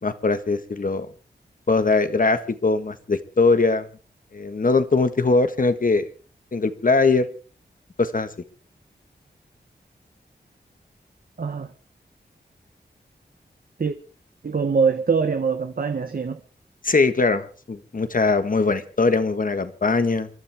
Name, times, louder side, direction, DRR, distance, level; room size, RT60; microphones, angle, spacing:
voice 1, 0.0-1.1 1.7-3.9 4.3-6.1 6.5-7.3 8.0-8.3 16.8-20.3, left 3 dB, 50° left, 1.5 m, -21 dB
voice 2, 11.4-11.7 13.8-14.0 14.4-16.4, right 5 dB, 55° right, 1.1 m, -23 dB
28.5 x 12.0 x 3.5 m
wide cardioid pair, 75°, 18 cm